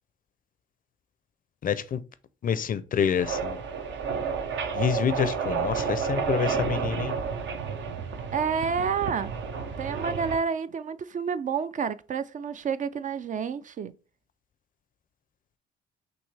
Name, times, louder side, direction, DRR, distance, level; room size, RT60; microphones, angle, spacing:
voice 1, 1.6-2.0 2.4-3.6 4.7-7.1, left 8 dB, 45° left, 0.5 m, -27 dB
sound 1, 3.2-10.4, right 6 dB, 65° right, 0.8 m, -31 dB
voice 2, 8.3-9.3 9.8-13.9, right 6 dB, 40° right, 0.4 m, -29 dB
6.0 x 2.7 x 3.3 m
cardioid pair, 90°, 20 cm